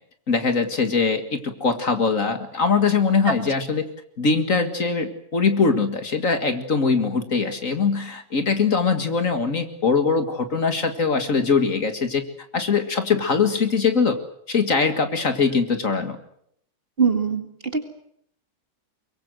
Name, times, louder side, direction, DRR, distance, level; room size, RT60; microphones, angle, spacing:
voice 1, 0.3-3.9 4.2-12.2 12.5-14.2 14.5-16.2, left 5 dB, 50° left, 8 dB, 2.2 m, -22 dB
voice 2, 17.0-17.8, right 5 dB, 35° right, 7 dB, 2.3 m, -22 dB
23.5 x 23.0 x 7.8 m, 0.71 s
omnidirectional pair, 1.8 m